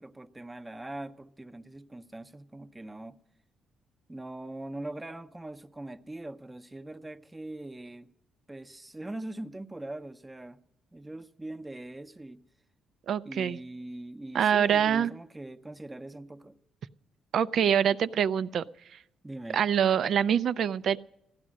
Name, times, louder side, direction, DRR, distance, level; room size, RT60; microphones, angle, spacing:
voice 1, 0.0-3.2 4.1-8.1 8.5-10.6 10.9-12.4 13.2-16.6 19.2-19.6, right 1 dB, 15° right, 0.8 m, -42 dB
voice 2, 13.1-13.6 14.3-15.1 17.3-19.0 19.5-21.0, right 8 dB, 65° right, 0.5 m, -25 dB
16.0 x 11.0 x 6.3 m
cardioid pair, 90°, 0 cm